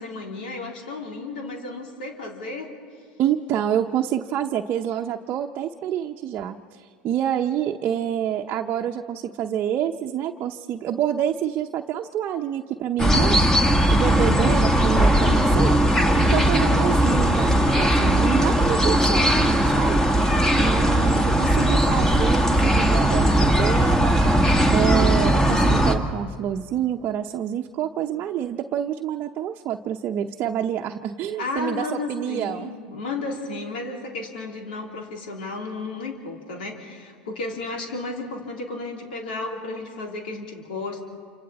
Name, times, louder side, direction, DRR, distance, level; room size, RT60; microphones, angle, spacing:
voice 1, 0.0-2.7 14.2-14.4 16.3-17.0 21.0-21.5 31.4-41.0, left 3 dB, 85° left, 1 dB, 3.7 m, -33 dB
voice 2, 3.2-13.4 13.9-15.8 16.2-20.0 20.6-24.2 24.7-32.7, right 10 dB, 45° right, 3 dB, 0.9 m, -27 dB
sound 1, 13.0-25.9, right 1 dB, 10° left, 2.0 m, -19 dB
28.0 x 26.5 x 4.3 m, 2.2 s
hypercardioid pair, 100°, 5 cm